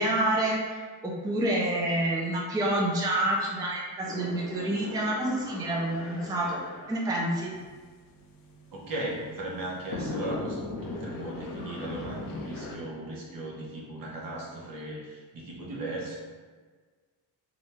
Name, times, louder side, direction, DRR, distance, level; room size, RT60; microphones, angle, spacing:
voice 1, 0.0-6.6 6.9-7.5, right 1 dB, 10° right, -3 dB, 0.4 m, -28 dB
sound 1, 4.0-12.8, left 2 dB, 60° left, 0.5 m, -40 dB
voice 2, 8.7-16.2, right 1 dB, 60° right, -3 dB, 0.8 m, -37 dB
2.5 x 2.2 x 3.0 m, 1.5 s
cardioid pair, 85°, 39 cm